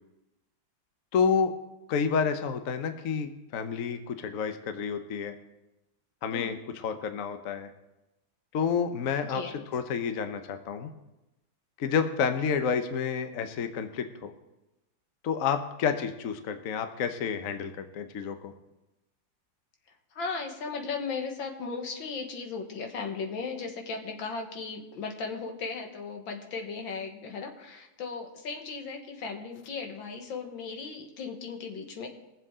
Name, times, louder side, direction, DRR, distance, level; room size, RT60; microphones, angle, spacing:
voice 1, 1.1-1.5 1.9-5.3 6.2-6.6 6.8-7.7 8.5-9.4 9.7-10.9 11.8-14.3 15.2-18.5, left 6 dB, 55° left, 8 dB, 1.1 m, -29 dB
voice 2, 9.2-9.7 20.1-32.1, left 4 dB, 90° left, 3 dB, 2.1 m, -36 dB
21.5 x 7.6 x 3.7 m, 0.96 s
omnidirectional pair, 2.0 m